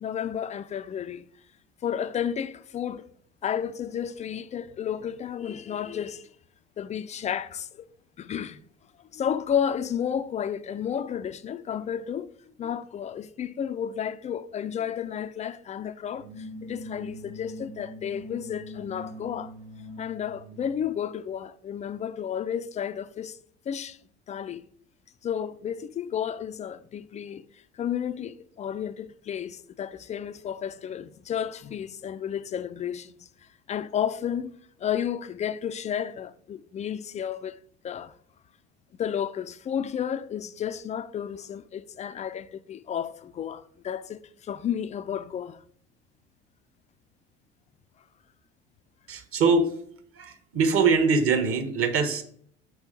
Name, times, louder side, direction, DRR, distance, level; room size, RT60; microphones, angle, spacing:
voice 1, 0.0-1.2 1.8-3.1 3.4-6.3 6.8-7.9 8.2-8.6 9.1-12.3 12.6-19.5 20.0-23.4 23.7-24.0 24.3-24.6 25.2-27.4 27.7-33.3 33.7-34.5 34.8-37.6 37.8-38.1 39.0-45.6, left 8 dB, 20° left, 0.4 m, -32 dB
sound 1, 16.1-20.9, left 1 dB, 65° right, 1.4 m, -42 dB
voice 2, 49.1-49.7 50.1-52.2, right 4 dB, 40° right, 1.3 m, -23 dB
6.2 x 5.1 x 5.1 m
figure-of-eight pair, 65°, 34 cm